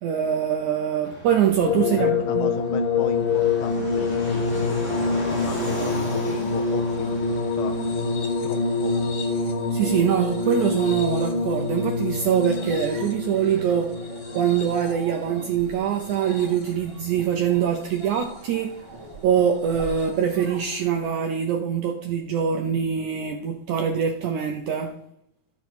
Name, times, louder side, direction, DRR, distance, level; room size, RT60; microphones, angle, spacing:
voice 1, 0.0-2.5 9.7-14.0 14.3-18.7 19.2-24.9, right 8 dB, 80° right, 3 dB, 1.8 m, -24 dB
Fixed-wing aircraft airplane, 1.0-19.4, equal, 30° left, 1.2 m, -39 dB
sound 1, 1.6-16.9 17.8-18.5 19.9-20.0, left 4 dB, 55° left, 1.6 m, -26 dB
voice 2, 2.0-7.8 8.4-9.0, left 9 dB, 80° left, 11 dB, 2.2 m, -36 dB
sound 2, 3.7-21.1, right 3 dB, 45° right, 1.9 m, -45 dB
13.0 x 4.4 x 6.0 m, 0.74 s
omnidirectional pair, 4.4 m